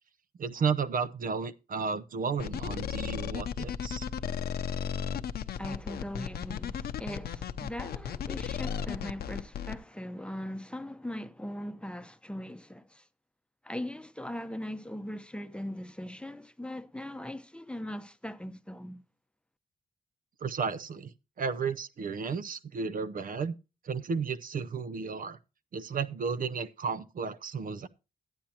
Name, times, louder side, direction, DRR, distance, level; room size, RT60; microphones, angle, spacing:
voice 1, 0.4-4.1 20.4-21.1 21.4-23.6 23.8-25.4 25.7-27.9, right 5 dB, 60° right, 0.7 m, -33 dB
sound 1, 2.4-9.8, left 8 dB, 80° left, 0.7 m, -35 dB
voice 2, 5.6-13.1 13.6-19.0, left 1 dB, 5° left, 0.8 m, -40 dB
13.0 x 8.8 x 2.9 m
cardioid pair, 65°, 16 cm